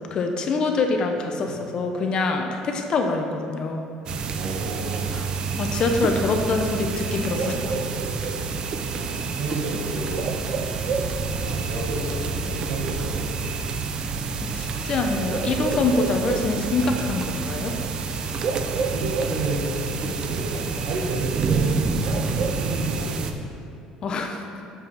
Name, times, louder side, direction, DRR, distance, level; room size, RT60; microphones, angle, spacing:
voice 1, 0.0-3.8 5.1-5.2 5.6-7.7 14.4-17.7 24.0-24.4, left 3 dB, 40° left, 4 dB, 0.8 m, -25 dB
sound 1, 4.1-23.3, right 4 dB, 40° right, 0.6 m, -27 dB
voice 2, 4.4-5.2 9.1-10.4 10.9-13.6 18.6-23.2, right 2 dB, 70° right, 0 dB, 1.6 m, -32 dB
7.2 x 6.3 x 5.8 m, 2.6 s
cardioid pair, 130°, 2 cm